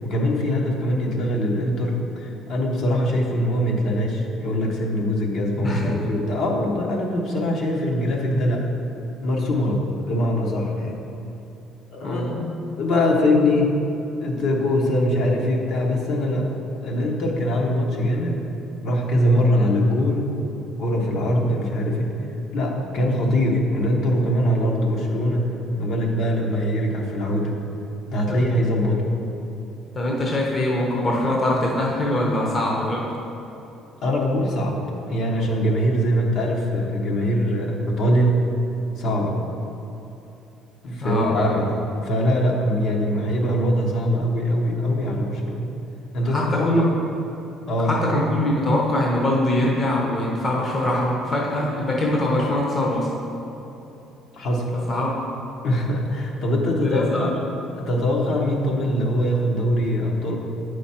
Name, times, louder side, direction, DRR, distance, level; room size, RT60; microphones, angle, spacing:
voice 1, 0.0-8.7 9.2-11.0 11.9-12.4 12.8-13.9 14.2-16.5 16.8-18.4 18.8-20.3 20.8-22.1 22.5-25.5 25.8-27.6 28.1-29.0 34.0-34.8 35.1-38.4 39.0-39.4 40.8-41.7 42.0-45.7 46.1-46.8 47.7-47.9 54.3-54.7 55.6-57.4 57.8-60.4, equal, 55° left, 0 dB, 1.0 m, -22 dB
voice 2, 5.6-5.9 12.0-12.5 21.1-21.5 28.3-28.5 29.9-33.1 41.0-41.6 46.2-46.9 47.9-53.1 54.9-55.1 56.7-57.3, left 1 dB, 25° left, -2 dB, 0.8 m, -23 dB
8.7 x 5.0 x 4.3 m, 2.9 s
cardioid pair, 155°, 0 cm